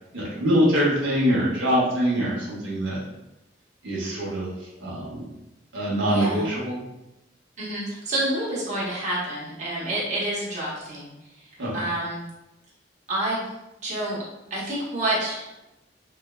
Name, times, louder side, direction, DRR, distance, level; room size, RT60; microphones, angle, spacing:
voice 1, 0.1-3.0 3.8-4.5 4.8-5.2 5.7-6.8 11.6-11.7, equal, 85° right, -5 dB, 0.8 m, -24 dB
voice 2, 6.0-6.4 7.6-11.1 11.4-12.2 13.1-13.5 13.8-14.2 14.5-15.5, right 1 dB, 40° right, -7 dB, 0.8 m, -28 dB
3.1 x 2.1 x 2.2 m, 0.91 s
head